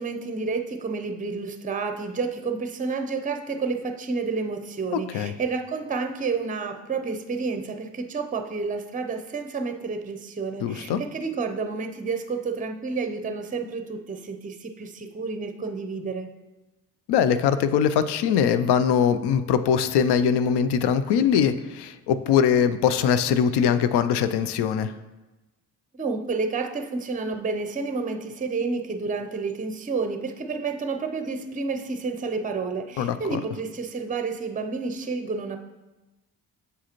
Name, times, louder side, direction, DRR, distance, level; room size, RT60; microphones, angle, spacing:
voice 1, 0.0-16.3 25.9-35.6, right 4 dB, 20° right, 6 dB, 0.6 m, -30 dB
voice 2, 10.6-11.0 17.1-24.9 33.0-33.4, left 7 dB, 65° left, 12 dB, 0.5 m, -22 dB
6.7 x 4.7 x 3.0 m, 1.1 s
hypercardioid pair, 45°, 43 cm